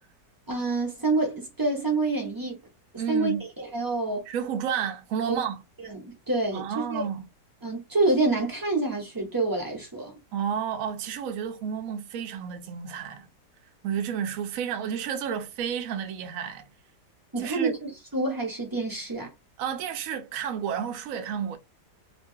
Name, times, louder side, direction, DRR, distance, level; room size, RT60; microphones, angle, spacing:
voice 1, 0.5-2.6 3.1-4.2 5.3-5.4 5.8-7.1 7.6-10.1 17.3-19.3, right 3 dB, 20° right, 0.6 m, -27 dB
voice 2, 3.0-3.4 4.3-5.6 6.5-7.3 10.3-13.3 13.8-16.6 17.4-17.8 19.6-21.6, right 8 dB, 65° right, 0.9 m, -31 dB
3.0 x 2.3 x 2.7 m
omnidirectional pair, 1.8 m